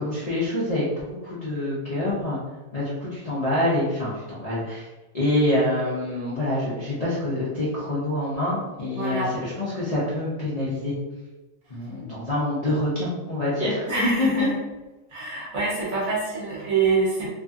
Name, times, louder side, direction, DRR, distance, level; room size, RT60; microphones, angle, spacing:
voice 1, 0.0-2.4 2.7-4.9 5.1-10.9 11.7-14.5, left 1 dB, 45° left, -8 dB, 0.4 m, -26 dB
voice 2, 9.0-9.3 13.9-14.6 15.1-17.3, right 4 dB, 55° right, -6 dB, 1.1 m, -25 dB
2.7 x 2.6 x 2.4 m, 1.1 s
omnidirectional pair, 1.6 m